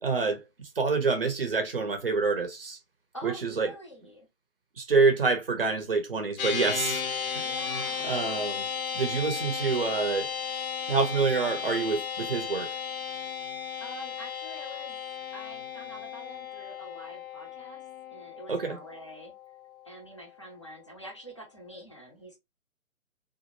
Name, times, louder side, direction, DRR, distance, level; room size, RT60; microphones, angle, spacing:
voice 1, 0.0-2.8 3.2-3.7 4.8-7.0 7.3-7.4 8.0-8.7 8.9-10.3 10.9-12.8 18.5-18.8, right 4 dB, 40° right, 0.6 m, -27 dB
voice 2, 3.1-4.3 7.4-8.3 13.5-15.0 15.3-17.8 18.1-19.3 19.8-22.4, equal, 20° left, 0.5 m, -46 dB
sound 1, 6.4-19.9, left 6 dB, 75° left, 0.7 m, -35 dB
2.4 x 2.0 x 2.6 m
figure-of-eight pair, 145°, 43 cm